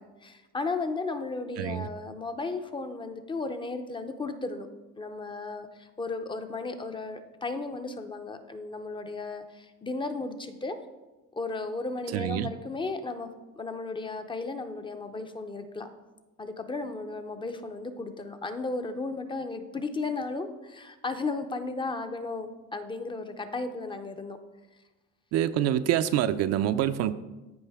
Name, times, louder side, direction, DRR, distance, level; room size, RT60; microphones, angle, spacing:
voice 1, 0.0-4.7 5.0-10.8 11.3-13.3 13.5-15.9 16.4-24.4, left 3 dB, 15° left, 0.5 m, -35 dB
voice 2, 1.6-1.9 12.1-12.5 25.3-27.1, right 11 dB, 55° right, 0.4 m, -26 dB
14.0 x 5.1 x 3.5 m
cardioid pair, 145°, 30 cm